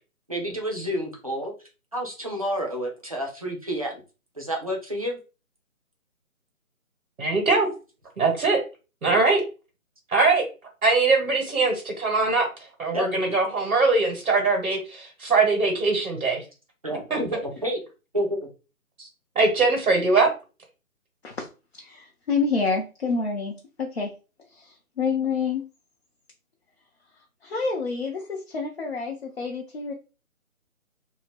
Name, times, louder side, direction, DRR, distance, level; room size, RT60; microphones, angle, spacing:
voice 1, 0.3-1.5 1.9-4.0 4.4-5.2 12.9-13.0 16.8-17.8 18.1-18.4, equal, 25° right, 0 dB, 0.5 m, -29 dB
voice 2, 7.2-7.7 8.2-8.6 9.0-9.4 10.1-10.4 10.8-12.5 12.8-16.4 17.1-17.2 19.0-19.1 19.3-20.3, right 3 dB, 70° right, 1 dB, 1.3 m, -21 dB
voice 3, 21.7-24.1 24.5-25.6 27.4-29.9, left 4 dB, 45° left, 0 dB, 0.7 m, -28 dB
2.8 x 2.7 x 3.1 m, 0.32 s
figure-of-eight pair, 155°, 43 cm